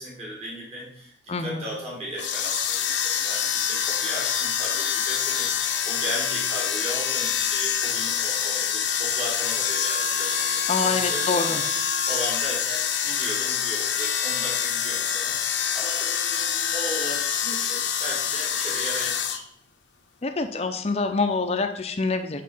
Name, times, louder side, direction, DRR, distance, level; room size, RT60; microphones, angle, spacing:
voice 1, 0.0-5.5 5.8-19.4, equal, 35° right, -3 dB, 1.7 m, -36 dB
voice 2, 1.3-1.7 10.7-11.6 20.2-22.4, left 3 dB, 35° left, 7 dB, 0.5 m, -26 dB
sound 1, 2.1-19.4, left 8 dB, 80° left, 0.7 m, -26 dB
8.5 x 3.8 x 5.4 m, 0.74 s
head